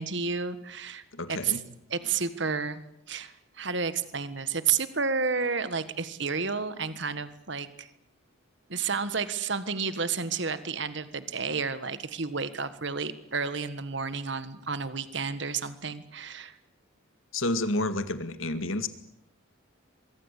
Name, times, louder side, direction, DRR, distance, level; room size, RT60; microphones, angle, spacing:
voice 1, 0.0-1.6 1.9-2.8 3.1-7.9 8.7-16.5, right 5 dB, 60° right, 13 dB, 1.6 m, -31 dB
voice 2, 1.1-1.6 17.3-18.9, left 2 dB, 80° left, 10 dB, 2.2 m, -29 dB
23.5 x 23.5 x 8.4 m, 0.76 s
head